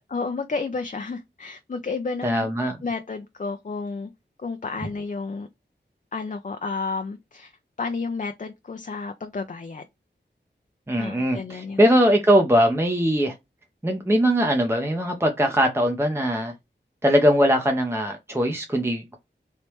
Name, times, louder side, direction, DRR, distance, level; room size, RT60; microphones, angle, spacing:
voice 1, 0.1-2.5 2.8-4.1 4.4-5.5 6.1-7.5 7.8-9.8 11.0-11.8, left 4 dB, 45° left, 0.5 m, -31 dB
voice 2, 2.2-2.8 10.9-13.3 13.8-16.5 17.0-19.2, equal, 15° right, 0.6 m, -21 dB
3.2 x 2.9 x 3.0 m
wide cardioid pair, 55°, 19 cm